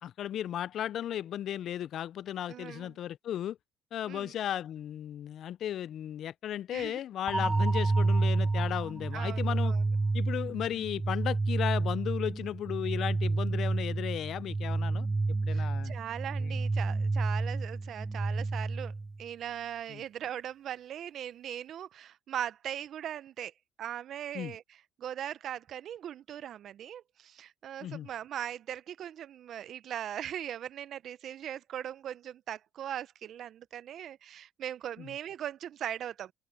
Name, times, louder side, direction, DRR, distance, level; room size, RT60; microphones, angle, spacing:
voice 1, 0.0-3.6 3.9-9.7 10.1-15.1 15.4-16.0 16.4-16.6 19.9-20.0 24.3-24.6 27.8-28.1 35.0-35.1, left 11 dB, 60° left, 0.5 m, -35 dB
voice 2, 2.5-3.0 4.1-4.3 6.7-7.0 9.1-9.8 15.5-18.9 19.2-23.5 23.8-36.3, right 10 dB, 60° right, 0.9 m, -40 dB
sound 1, 7.3-19.2, right 3 dB, 20° right, 0.5 m, -30 dB
hypercardioid pair, 65°, 0 cm